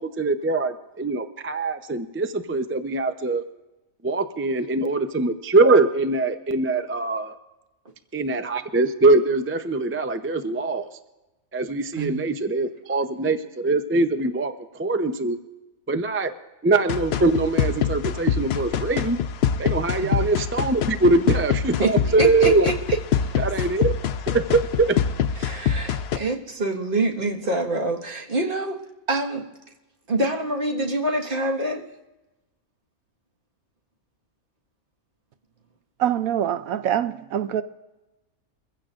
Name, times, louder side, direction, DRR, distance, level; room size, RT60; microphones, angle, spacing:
voice 1, 0.0-3.4 4.0-7.4 8.1-10.9 11.5-15.4 15.9-16.3 16.6-19.2 19.6-22.7 23.4-23.9 24.3-24.4 24.8-25.0, right 3 dB, 15° right, 0.4 m, -22 dB
sound 1, 16.9-26.2, left 8 dB, 60° left, 0.7 m, -25 dB
voice 2, 22.2-23.4 25.4-28.8 29.1-29.5 30.1-31.9, right 2 dB, 40° right, 1.7 m, -26 dB
voice 3, 36.0-37.6, right 10 dB, 80° right, 1.1 m, -24 dB
23.5 x 15.5 x 2.5 m
omnidirectional pair, 1.5 m